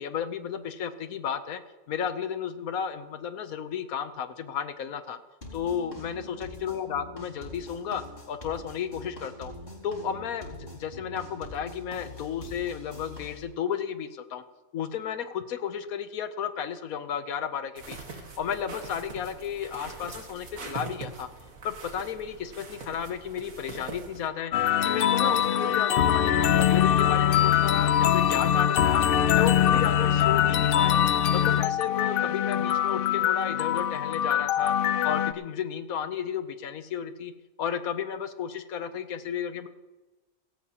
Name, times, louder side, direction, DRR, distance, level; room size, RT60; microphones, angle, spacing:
voice 1, 0.0-1.6 1.9-5.2 5.5-8.0 8.3-9.5 9.8-14.4 14.7-21.3 21.6-24.5 24.8-29.0 29.3-31.0 31.3-34.7 35.0-37.3 37.6-39.7, left 8 dB, 85° left, 10 dB, 1.3 m, -33 dB
sound 1, 5.4-13.4, left 1 dB, 40° left, 4.3 m, -44 dB
sound 2, 17.8-24.3, right 3 dB, 70° right, 2.1 m, -42 dB
sound 3, 24.5-35.3, left 10 dB, 65° left, 0.5 m, -23 dB
18.0 x 17.0 x 2.9 m, 1.2 s
omnidirectional pair, 1.5 m